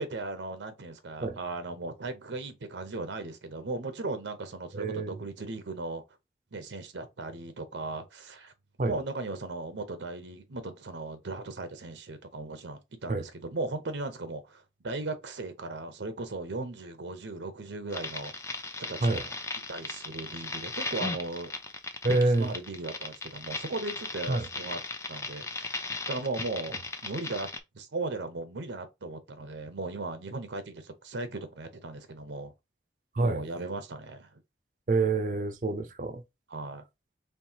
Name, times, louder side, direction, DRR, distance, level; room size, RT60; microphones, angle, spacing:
voice 1, 0.0-6.0 6.5-8.5 8.9-18.3 18.9-19.4 19.7-21.5 22.1-24.8 25.1-25.8 26.1-26.8 27.0-27.5 27.7-32.5 33.2-34.3 36.5-36.8, right 2 dB, 85° right, 0.8 m, -37 dB
voice 2, 4.7-5.2 8.8-9.0 13.1-13.2 19.0-19.2 22.0-22.5 24.3-24.5 33.1-33.4 34.9-36.2, right 2 dB, 45° right, 0.5 m, -27 dB
sound 1, 17.9-27.6, left 3 dB, 15° left, 0.5 m, -37 dB
4.5 x 3.2 x 2.8 m
head